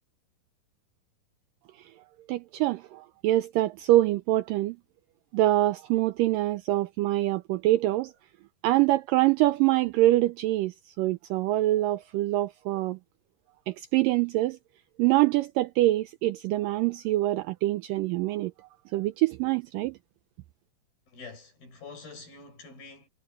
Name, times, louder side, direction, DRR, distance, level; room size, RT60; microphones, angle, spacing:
voice 1, 2.3-4.8 5.3-8.1 8.6-13.0 13.7-14.6 15.0-18.5 18.9-20.0, right 16 dB, 80° right, 2.0 m, -25 dB
voice 2, 21.1-23.1, left 4 dB, 70° left, 10.0 m, -46 dB
omnidirectional pair, 4.4 m